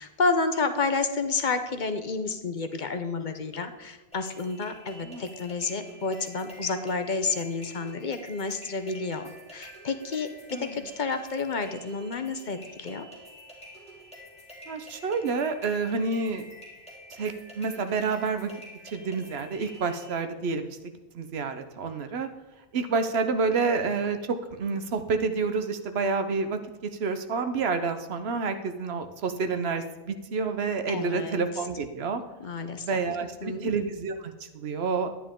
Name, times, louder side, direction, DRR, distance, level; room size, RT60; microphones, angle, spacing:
voice 1, 0.0-13.1 30.9-31.4 32.4-33.0 33.4-33.7, left 4 dB, 50° left, 8 dB, 0.9 m, -30 dB
sound 1, 4.1-20.1, equal, 5° left, 2.7 m, -48 dB
voice 2, 10.5-10.8 14.7-16.4 17.1-18.5 18.8-20.8 21.1-22.3 22.7-32.2 32.8-35.1, right 4 dB, 80° right, 8 dB, 1.1 m, -29 dB
11.5 x 9.8 x 3.7 m, 1.2 s
omnidirectional pair, 1.0 m